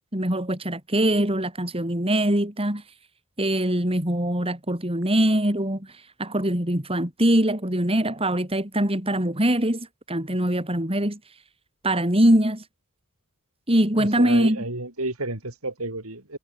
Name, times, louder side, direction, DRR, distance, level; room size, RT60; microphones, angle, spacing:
voice 1, 0.1-2.8 3.4-5.9 6.2-11.2 11.8-12.6 13.7-14.6, right 1 dB, 25° right, 4.8 m, -22 dB
voice 2, 14.0-16.4, right 2 dB, 75° right, 6.4 m, -31 dB
head